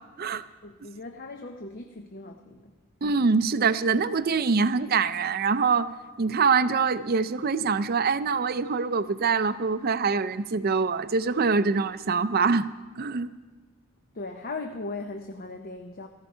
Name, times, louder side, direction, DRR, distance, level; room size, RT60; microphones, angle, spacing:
voice 1, 0.6-2.7 14.1-16.1, left 3 dB, 45° left, 5 dB, 0.7 m, -38 dB
voice 2, 3.0-5.9 6.2-12.7 13.0-13.3, right 5 dB, 45° right, 14 dB, 0.5 m, -24 dB
14.5 x 14.5 x 5.6 m, 1.3 s
head